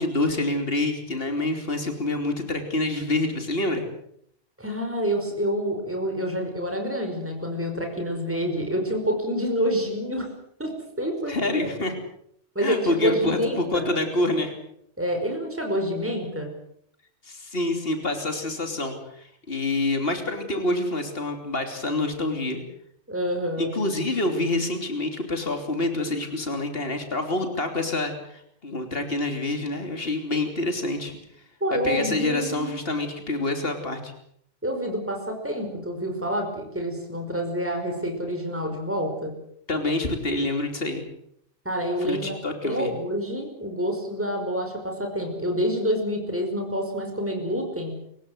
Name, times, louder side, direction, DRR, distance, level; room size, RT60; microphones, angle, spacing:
voice 1, 0.0-3.8 11.3-11.9 12.6-14.5 17.2-22.6 23.6-31.1 31.8-34.1 39.7-41.0 42.1-42.9, left 2 dB, 55° left, 6 dB, 3.4 m, -27 dB
voice 2, 4.6-10.3 10.6-11.8 12.6-13.9 15.0-16.5 23.1-23.7 31.6-32.7 34.6-39.3 41.7-42.4 42.6-47.9, equal, 10° right, 3 dB, 5.2 m, -27 dB
29.0 x 16.5 x 7.9 m, 0.71 s
omnidirectional pair, 1.2 m